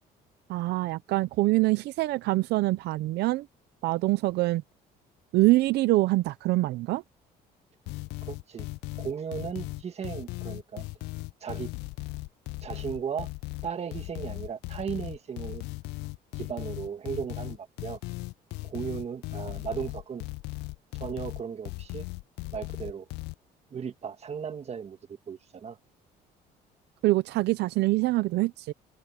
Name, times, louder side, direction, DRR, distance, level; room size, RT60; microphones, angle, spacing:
voice 1, 0.5-3.5 3.8-4.6 5.3-7.0 27.0-28.7, right 19 dB, 80° right, 0.6 m, -25 dB
sound 1, 7.9-23.3, left 21 dB, 90° left, 0.5 m, -37 dB
voice 2, 8.2-8.7 9.0-10.9 11.4-11.7 12.6-13.3 13.6-15.6 16.3-18.0 18.6-20.2 21.0-22.1 22.5-23.1 23.7-25.0 25.3-25.8, right 7 dB, 40° right, 1.8 m, -36 dB
cardioid pair, 110°, 17 cm